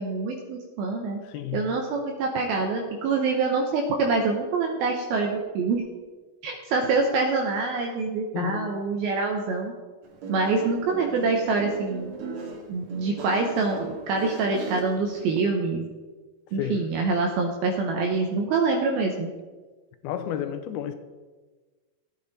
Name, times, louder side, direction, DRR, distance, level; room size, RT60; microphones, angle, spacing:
voice 1, 0.0-1.2 1.5-5.8 6.4-9.7 10.3-12.1 12.7-15.8 16.5-19.3, right 4 dB, 75° right, 2 dB, 2.7 m, -25 dB
voice 2, 1.2-1.7 8.3-8.7 16.6-16.9 18.0-18.1 20.0-21.0, left 9 dB, 90° left, 10 dB, 2.6 m, -31 dB
Guitar, 10.0-15.4, right 3 dB, 55° right, 2.5 m, -38 dB
15.0 x 8.7 x 4.1 m, 1.3 s
omnidirectional pair, 4.5 m